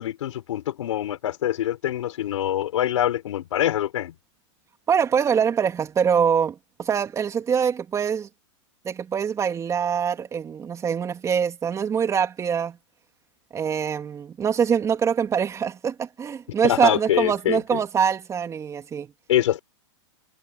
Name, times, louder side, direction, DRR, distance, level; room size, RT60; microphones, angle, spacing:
voice 1, 0.0-4.1 16.6-17.8 19.3-19.6, left 12 dB, 80° left, 4.4 m, -24 dB
voice 2, 4.9-8.3 8.8-12.8 13.5-19.1, right 7 dB, 20° right, 3.3 m, -24 dB
supercardioid pair, 140°, 16 cm